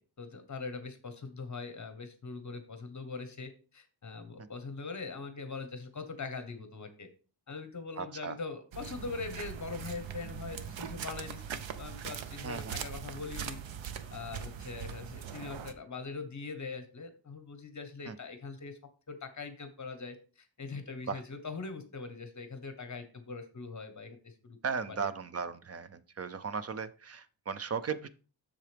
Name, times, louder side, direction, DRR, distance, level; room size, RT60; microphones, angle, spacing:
voice 1, 0.2-7.1 7.5-13.6 14.1-18.8 19.1-24.6 24.9-25.1, left 4 dB, 40° left, 9 dB, 1.1 m, -42 dB
voice 2, 8.0-8.4 12.4-12.8 18.1-18.2 21.1-21.2 24.6-28.1, right 6 dB, 35° right, 14 dB, 0.4 m, -36 dB
sound 1, 8.7-15.7, right 8 dB, 80° right, 0.8 m, -41 dB
7.5 x 6.7 x 3.4 m, 0.36 s
wide cardioid pair, 155°, 46 cm